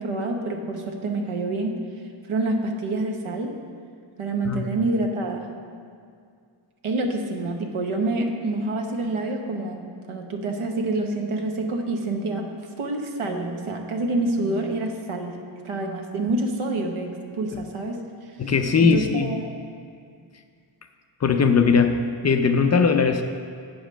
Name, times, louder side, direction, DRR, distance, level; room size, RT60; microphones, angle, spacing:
voice 1, 0.0-1.8 2.3-3.5 4.2-5.5 6.8-9.8 10.1-15.4 15.6-18.0 18.4-18.5 18.9-19.5, right 2 dB, 80° right, 2 dB, 1.0 m, -27 dB
voice 2, 18.4-19.3 21.2-23.2, left 5 dB, 35° left, 7 dB, 0.4 m, -19 dB
7.9 x 5.0 x 6.2 m, 2.2 s
wide cardioid pair, 140°, 48 cm